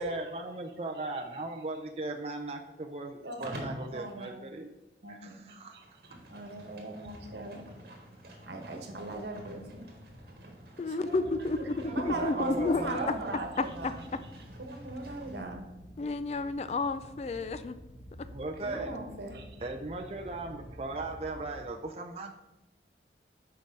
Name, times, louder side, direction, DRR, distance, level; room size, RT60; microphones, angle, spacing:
voice 1, 0.0-4.7 5.1-5.8 11.8-13.2 18.3-19.0 19.6-22.4, right 2 dB, 35° right, 3 dB, 0.5 m, -38 dB
voice 2, 3.2-4.4 5.0-5.3 5.7-7.6 8.4-9.9 10.9-11.3 11.5-11.6 11.9-14.1 14.6-15.7 18.6-19.4, right 2 dB, 70° right, 3 dB, 1.2 m, -39 dB
Livestock farm animals working animals, 3.4-3.9 5.6-15.4, equal, 55° right, 1.5 m, -48 dB
voice 3, 10.8-13.2 13.6-13.7 14.1-14.2 16.0-17.8, left 3 dB, 35° left, 12 dB, 0.3 m, -31 dB
sound 1, 11.1-21.6, equal, 85° left, 1.0 m, -50 dB
6.8 x 4.8 x 5.2 m, 0.99 s
head